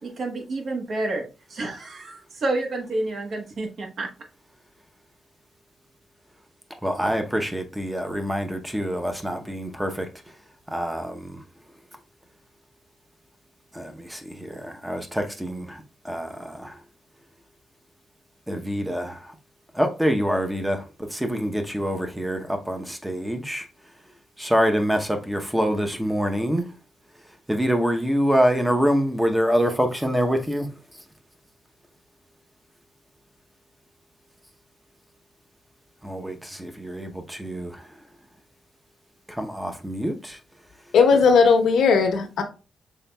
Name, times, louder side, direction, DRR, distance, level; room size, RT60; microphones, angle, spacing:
voice 1, 0.0-4.1, right 2 dB, 55° right, 1.1 m, -29 dB
voice 2, 6.8-10.4 10.7-11.4 13.7-16.8 18.5-19.3 19.7-23.7 24.4-26.7 27.5-31.0 36.0-38.0 39.3-40.4, equal, 5° right, 0.7 m, -26 dB
voice 3, 40.9-42.4, left 5 dB, 75° left, 1.0 m, -17 dB
5.6 x 3.9 x 2.2 m
cardioid pair, 125°, 0 cm